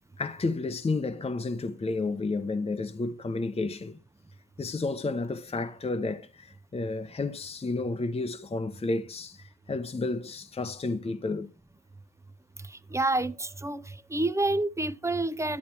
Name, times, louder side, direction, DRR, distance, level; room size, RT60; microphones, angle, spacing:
voice 1, 0.2-4.0 4.6-11.5, left 3 dB, 20° left, 0.9 m, -31 dB
voice 2, 12.9-15.6, right 2 dB, 10° right, 0.6 m, -28 dB
11.0 x 8.4 x 4.4 m
cardioid pair, 90°, 30 cm